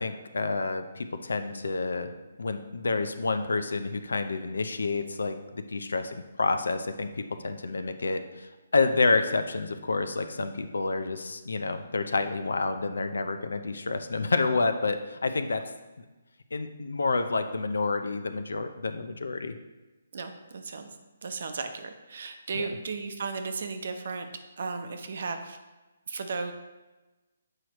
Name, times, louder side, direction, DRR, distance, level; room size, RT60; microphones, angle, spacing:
voice 1, 0.0-2.1 2.4-7.1 7.4-15.6 16.0-16.1 16.5-19.6 22.5-22.7, left 3 dB, 90° left, 8 dB, 0.6 m, -29 dB
voice 2, 20.1-20.9 21.2-24.3 24.6-25.6 26.1-26.5, right 4 dB, 55° right, 6 dB, 0.7 m, -35 dB
7.6 x 4.8 x 3.0 m, 1.1 s
hypercardioid pair, 165°, 0 cm